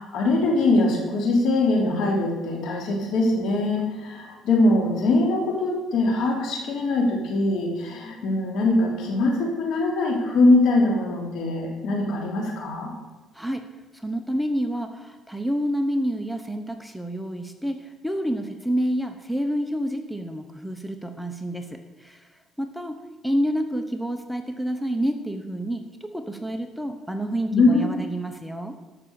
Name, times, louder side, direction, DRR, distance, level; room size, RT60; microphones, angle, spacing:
voice 1, 0.0-12.9 27.5-28.0, left 2 dB, 70° left, 1 dB, 3.3 m, -22 dB
voice 2, 13.3-13.7 13.9-22.3 22.6-23.0 23.2-28.7, equal, ahead, 6 dB, 0.9 m, -28 dB
13.0 x 6.2 x 7.0 m, 1.3 s
cardioid pair, 110°, 0 cm